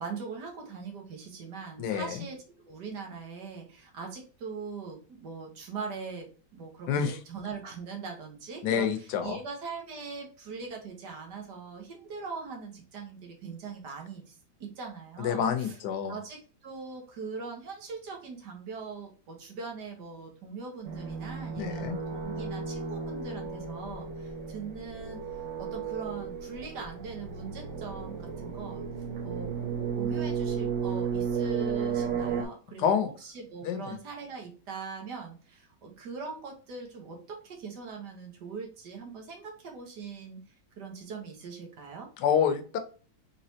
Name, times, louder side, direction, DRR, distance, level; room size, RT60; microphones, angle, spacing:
voice 1, 0.0-14.3 14.6-15.8 16.1-25.2 25.6-28.9 29.2-29.6 30.0-40.4 40.8-42.1, right 5 dB, 70° right, 2 dB, 1.7 m, -41 dB
voice 2, 1.8-2.2 6.9-7.2 8.6-9.4 15.2-16.2 21.6-22.0 32.8-33.1 33.6-34.0 42.2-42.8, left 7 dB, 75° left, 8 dB, 1.2 m, -28 dB
sound 1, 20.8-32.4, right 6 dB, 85° right, 1.5 m, -34 dB
4.1 x 3.5 x 2.7 m, 0.38 s
omnidirectional pair, 1.9 m